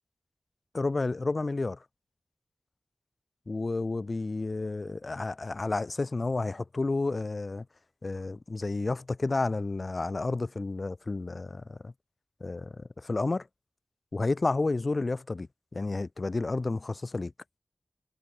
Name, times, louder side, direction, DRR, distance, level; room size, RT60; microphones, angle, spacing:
voice 1, 0.7-1.8 3.5-7.6 8.0-11.9 12.4-13.5 14.1-17.3, left 3 dB, 50° left, 3.0 m, -31 dB
wide cardioid pair, 60°, 0 cm